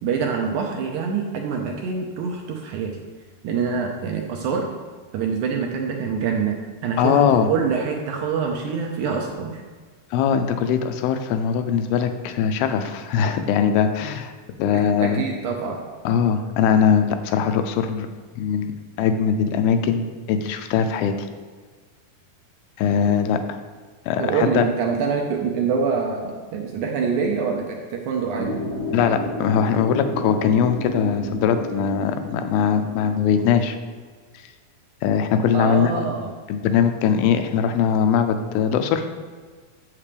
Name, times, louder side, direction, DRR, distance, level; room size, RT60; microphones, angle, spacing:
voice 1, 0.0-3.0 3.4-4.7 5.1-9.6 15.0-15.8 24.2-28.6 35.5-36.3, right 5 dB, 80° right, 1 dB, 1.8 m, -25 dB
voice 2, 7.0-7.5 10.1-14.3 14.6-15.2 16.1-18.1 18.4-18.7 19.0-21.1 22.8-23.6 24.1-24.7 28.9-33.8 35.0-36.1 36.5-39.1, left 7 dB, 85° left, 8 dB, 2.5 m, -21 dB
sound 1, 28.4-33.6, equal, 60° left, 1.2 m, -32 dB
8.5 x 7.4 x 3.4 m, 1.5 s
omnidirectional pair, 4.3 m